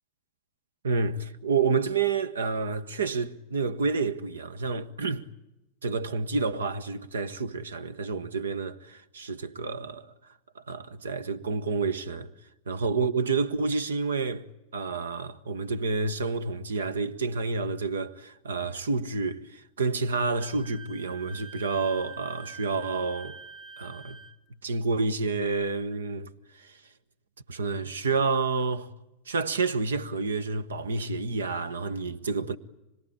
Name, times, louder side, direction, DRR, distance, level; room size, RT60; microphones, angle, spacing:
voice 1, 0.8-5.3 5.8-10.1 10.5-12.3 12.7-14.5 14.7-23.4 23.8-24.2 24.6-26.7 27.5-28.9 29.3-32.6, right 4 dB, 70° right, 1.0 m, -29 dB
Wind instrument woodwind instrument, 20.4-24.4, right 5 dB, 25° right, 1.1 m, -45 dB
25.5 x 21.5 x 9.9 m
figure-of-eight pair, 90°, 0 cm